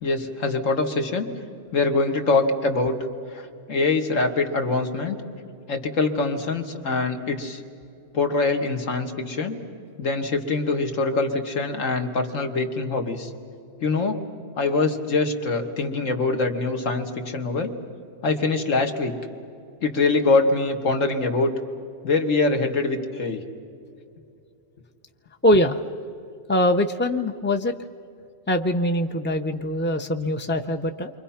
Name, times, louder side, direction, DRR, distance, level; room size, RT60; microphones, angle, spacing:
voice 1, 0.0-1.3 1.7-3.1 3.3-5.2 5.7-7.6 8.1-9.6 10.0-13.3 13.8-14.2 14.6-17.7 18.2-19.1 19.8-21.5 22.0-23.4, left 3 dB, 75° left, 5 dB, 2.0 m, -24 dB
voice 2, 25.4-25.8 26.5-27.7 28.5-31.1, left 1 dB, 20° left, 6 dB, 0.3 m, -22 dB
29.0 x 24.5 x 5.8 m, 2.5 s
omnidirectional pair, 1.3 m